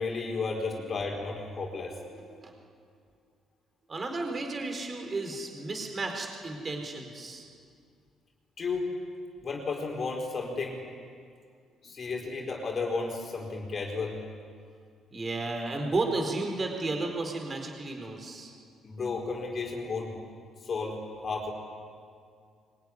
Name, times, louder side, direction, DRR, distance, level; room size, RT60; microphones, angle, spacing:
voice 1, 0.0-1.9 8.6-8.9 9.4-10.8 11.8-14.2 18.8-20.1 20.6-21.5, left 4 dB, 35° left, 0 dB, 4.9 m, -33 dB
voice 2, 3.9-7.5 15.1-18.5, right 2 dB, 25° right, 3 dB, 4.4 m, -33 dB
24.0 x 24.0 x 10.0 m, 2.2 s
cardioid pair, 145°, 0 cm